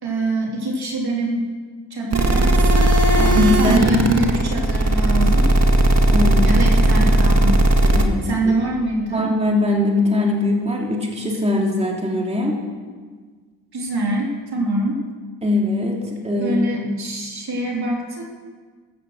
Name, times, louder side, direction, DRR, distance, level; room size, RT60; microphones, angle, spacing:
voice 1, 0.0-1.5 1.9-5.5 6.4-7.6 8.2-9.3 13.7-15.0 16.4-18.2, right 2 dB, 60° right, -1 dB, 3.4 m, -24 dB
sound 1, 2.1-8.0, right 1 dB, 35° right, 1.7 m, -16 dB
voice 2, 3.1-4.0 6.1-6.6 7.9-8.6 9.1-12.6 15.4-17.0, left 2 dB, 15° right, -1 dB, 2.8 m, -21 dB
15.0 x 14.5 x 6.5 m, 1.5 s
wide cardioid pair, 120°, 42 cm